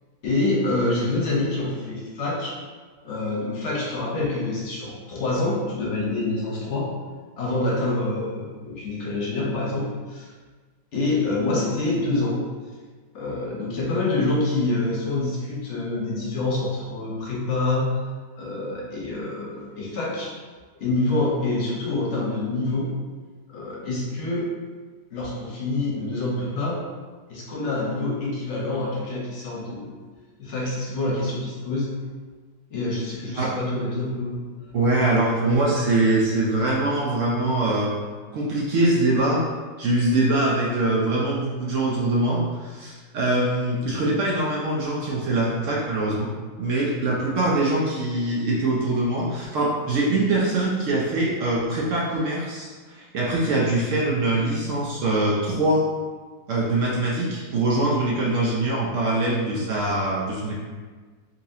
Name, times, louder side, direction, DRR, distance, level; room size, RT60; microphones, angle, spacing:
voice 1, 0.2-2.6 3.0-6.9 7.4-10.3 10.9-12.4 13.1-18.1 18.4-20.3 20.8-22.9 23.5-24.5 25.1-26.8 27.3-29.9 30.4-31.9 32.7-34.5, left 2 dB, 50° left, -4 dB, 1.0 m, -26 dB
voice 2, 34.7-38.0 38.3-39.4 39.8-46.3 46.6-55.9 56.5-60.6, right 2 dB, 65° right, -4 dB, 0.8 m, -23 dB
4.0 x 2.9 x 2.7 m, 1.4 s
omnidirectional pair, 1.8 m